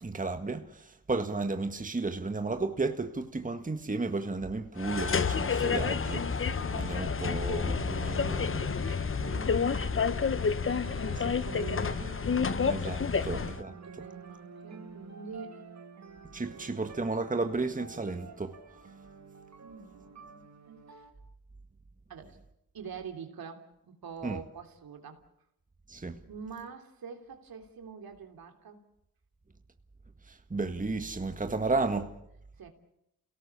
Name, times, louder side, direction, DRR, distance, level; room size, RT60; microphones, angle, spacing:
voice 1, 0.0-8.7 11.1-11.3 12.6-13.7 16.3-18.6 24.2-24.4 25.9-26.2 30.3-32.1, right 3 dB, 20° right, 1.7 m, -33 dB
sound 1, 4.8-13.6, left 5 dB, 35° left, 1.0 m, -29 dB
sound 2, 6.5-21.1, right 4 dB, 45° right, 2.4 m, -48 dB
voice 2, 8.5-12.1 13.3-13.4 13.7-15.7 19.6-21.0 22.1-22.4 22.7-25.2 26.3-28.8 31.8-32.1 32.6-32.7, right 6 dB, 75° right, 3.3 m, -46 dB
28.5 x 18.0 x 7.0 m
cardioid pair, 70°, 36 cm